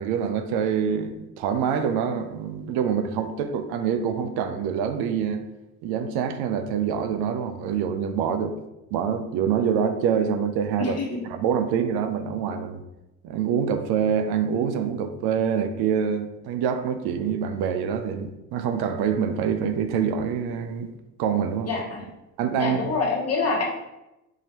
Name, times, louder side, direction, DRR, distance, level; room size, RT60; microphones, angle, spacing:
voice 1, 0.0-5.4 5.8-8.6 8.9-11.0 11.3-12.8 13.2-20.9 21.2-21.7 22.4-22.8, right 7 dB, 80° right, 9 dB, 0.6 m, -25 dB
voice 2, 10.8-11.3 21.6-22.0 22.6-23.6, left 4 dB, 40° left, -2 dB, 1.1 m, -26 dB
4.8 x 2.7 x 3.0 m, 0.96 s
supercardioid pair, 75°, 38 cm